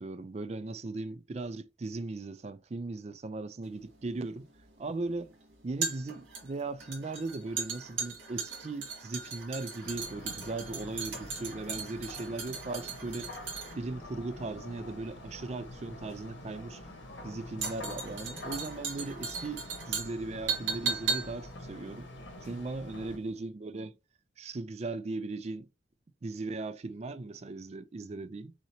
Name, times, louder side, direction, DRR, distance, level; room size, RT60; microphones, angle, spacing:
voice 1, 0.0-4.5 4.8-5.3 5.6-13.3 13.8-16.8 17.2-22.1 22.4-23.9 24.4-25.7 26.2-28.5, right 3 dB, 35° right, 0.4 m, -38 dB
sound 1, 3.7-22.9 23.2-23.3, right 5 dB, 80° right, 1.8 m, -38 dB
sound 2, 9.8-23.2, left 1 dB, 80° left, 1.9 m, -46 dB
5.7 x 2.9 x 2.8 m
head